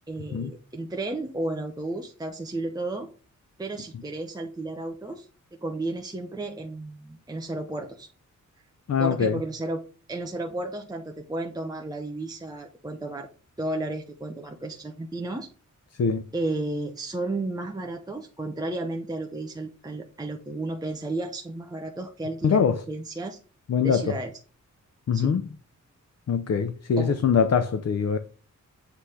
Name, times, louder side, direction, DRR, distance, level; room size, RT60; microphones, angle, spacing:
voice 1, 0.1-3.1 3.6-5.3 5.6-8.1 9.0-9.8 10.1-13.3 13.6-15.5 16.3-23.4 23.8-24.3 25.1-25.4 27.0-27.2, right 2 dB, 10° right, 0.8 m, -33 dB
voice 2, 8.9-9.4 16.0-16.2 22.4-22.8 23.7-24.2 25.1-25.4 26.3-28.2, left 6 dB, 55° left, 0.7 m, -23 dB
8.2 x 3.3 x 5.6 m
wide cardioid pair, 150°, 31 cm